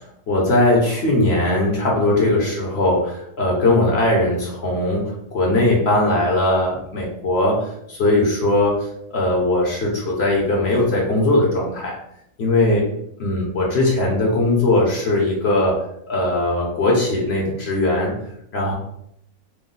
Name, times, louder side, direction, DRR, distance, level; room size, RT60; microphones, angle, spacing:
voice 1, 0.3-8.8 9.1-11.9 12.4-12.9 13.2-15.8 16.1-18.1 18.5-18.7, left 2 dB, 55° left, -2 dB, 0.8 m, -19 dB
3.1 x 2.1 x 3.7 m, 0.74 s
omnidirectional pair, 1.8 m